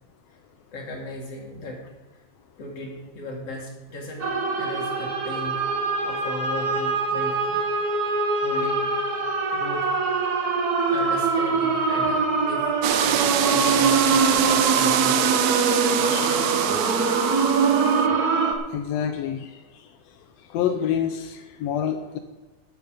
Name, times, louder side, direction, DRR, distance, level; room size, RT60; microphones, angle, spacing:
voice 1, 0.7-1.9 2.1-2.2 2.6-4.3 4.5-5.6 6.0-7.6 8.4-8.9 9.5-9.9 10.9-12.7 13.0-15.2, left 1 dB, 50° left, -1 dB, 3.6 m, -36 dB
sound 1, 4.2-18.5, right 4 dB, 55° right, 1.0 m, -23 dB
sound 2, 12.8-18.1, right 10 dB, 75° right, 2.0 m, -25 dB
voice 2, 16.1-16.6 18.7-19.5 20.5-22.2, left 9 dB, 75° left, 6 dB, 1.6 m, -27 dB
13.5 x 10.0 x 5.2 m, 1.2 s
omnidirectional pair, 3.6 m